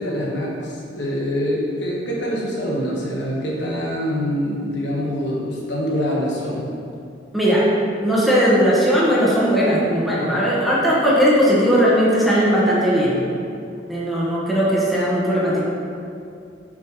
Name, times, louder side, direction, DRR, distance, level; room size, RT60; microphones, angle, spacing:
voice 1, 0.0-6.7, equal, 70° left, -4 dB, 1.3 m, -25 dB
voice 2, 7.3-7.7 8.0-13.2 13.9-15.7, equal, ahead, -7 dB, 1.1 m, -18 dB
7.4 x 5.1 x 2.9 m, 2.5 s
head